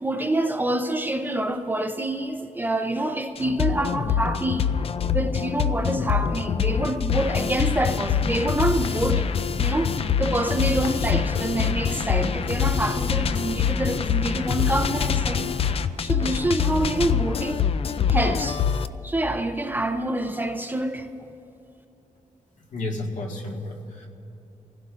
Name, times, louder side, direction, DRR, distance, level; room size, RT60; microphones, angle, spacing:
voice 1, 0.0-4.7 5.1-9.3 9.6-15.5 16.0-17.7 18.1-18.6 19.0-21.1, right 1 dB, 15° right, 5 dB, 0.6 m, -26 dB
sound 1, 3.4-18.9, left 7 dB, 45° left, 0.4 m, -25 dB
sound 2, 7.4-17.2, right 2 dB, 85° right, 2.0 m, -45 dB
voice 2, 22.7-24.1, left 2 dB, 65° left, 0 dB, 1.7 m, -32 dB
27.0 x 16.0 x 2.5 m, 2.8 s
wide cardioid pair, 170°, 14 cm